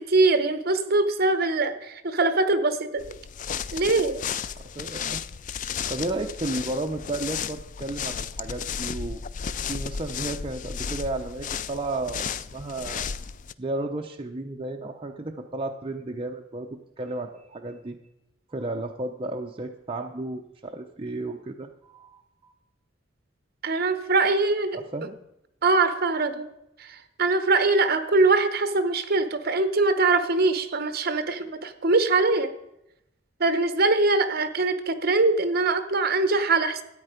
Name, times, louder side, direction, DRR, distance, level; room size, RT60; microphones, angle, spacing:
voice 1, 0.0-3.1 3.7-4.2 23.6-25.1 25.6-26.5 26.8-32.5 33.4-36.8, right 3 dB, 50° right, 11 dB, 1.0 m, -23 dB
sound 1, 3.0-13.5, left 7 dB, 40° left, 0.4 m, -34 dB
voice 2, 4.6-5.2 5.7-9.2 9.7-13.1 13.6-16.7 17.0-18.0 18.5-22.5 24.8-25.2, right 2 dB, 25° right, 3 dB, 0.6 m, -33 dB
13.5 x 8.9 x 5.0 m, 0.84 s
head